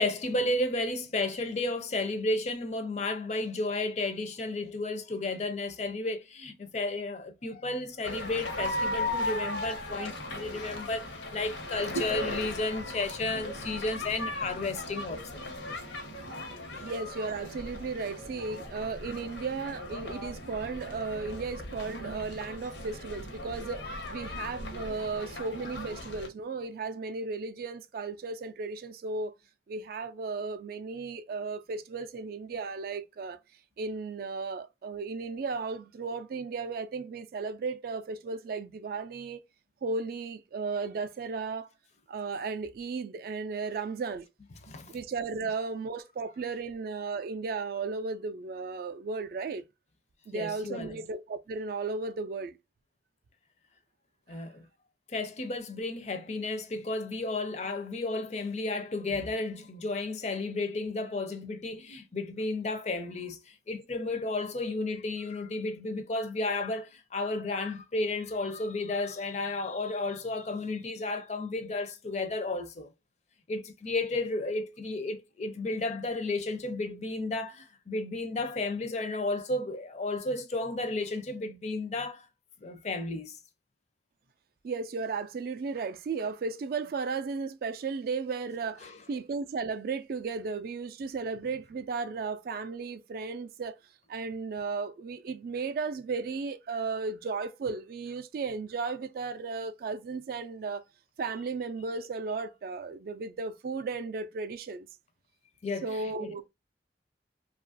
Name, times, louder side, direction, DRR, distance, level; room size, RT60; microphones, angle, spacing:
voice 1, 0.0-15.4 16.8-16.9 44.6-44.9 50.3-51.0 54.3-54.6 55.1-72.9 73.5-82.2 82.6-83.3 88.8-88.9 105.6-106.3, left 2 dB, 40° left, 0.4 m, -33 dB
sound 1, 8.0-26.3, left 1 dB, 85° left, 0.9 m, -37 dB
voice 2, 16.8-23.8 24.1-29.3 29.7-33.4 33.8-39.4 39.8-41.7 42.1-44.3 44.9-49.6 50.3-52.5 84.6-93.8 94.1-100.8 101.2-104.9 105.8-106.5, right 4 dB, 55° right, 0.3 m, -35 dB
2.8 x 2.4 x 2.5 m
head